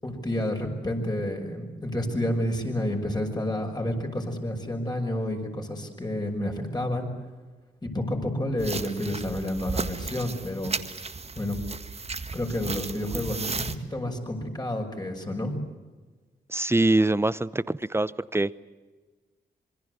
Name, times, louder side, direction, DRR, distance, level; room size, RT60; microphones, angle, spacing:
voice 1, 0.0-7.1 7.8-10.7 11.4-11.6 12.3-13.7 13.9-15.6, left 1 dB, 20° left, 3 dB, 6.1 m, -30 dB
sound 1, 8.6-13.8, right 4 dB, 35° right, 1.7 m, -34 dB
voice 2, 16.5-18.6, right 2 dB, 15° right, 17 dB, 0.8 m, -24 dB
27.0 x 22.5 x 8.2 m, 1.3 s
cardioid pair, 75°, 18 cm